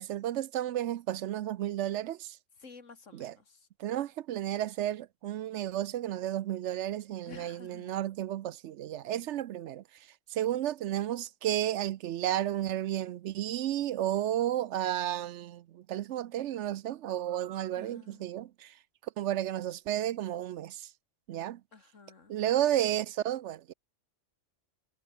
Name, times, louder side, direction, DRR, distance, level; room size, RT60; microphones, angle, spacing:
voice 1, 0.0-2.4 3.1-3.4 3.8-20.9 21.3-21.6 22.3-23.7, right 12 dB, 70° right, 0.9 m, -32 dB
voice 2, 2.6-3.4 7.3-8.0 17.8-18.2 21.7-22.4, left 4 dB, 85° left, 2.7 m, -51 dB
omnidirectional pair, 1.3 m